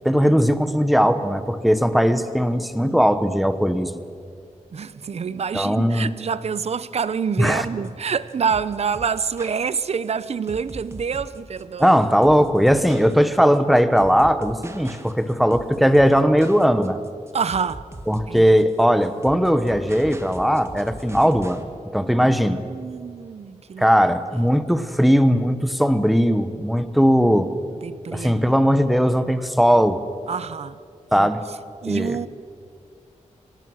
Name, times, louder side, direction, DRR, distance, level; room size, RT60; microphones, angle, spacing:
voice 1, 0.0-4.0 5.5-6.1 7.4-7.7 11.8-17.0 18.1-21.6 21.9-22.6 23.8-27.5 28.1-30.0 31.1-31.4 31.8-32.3, equal, ahead, 1.1 m, -18 dB
voice 2, 4.7-11.9 17.3-17.8 18.3-18.4 22.2-22.3 22.7-23.9 27.8-28.4 30.3-30.8 31.1-31.3 31.8-32.3, right 6 dB, 55° right, 0.7 m, -27 dB
sound 1, 7.6-21.6, right 2 dB, 20° right, 1.5 m, -41 dB
25.0 x 18.0 x 6.4 m
wide cardioid pair, 125°, 13 cm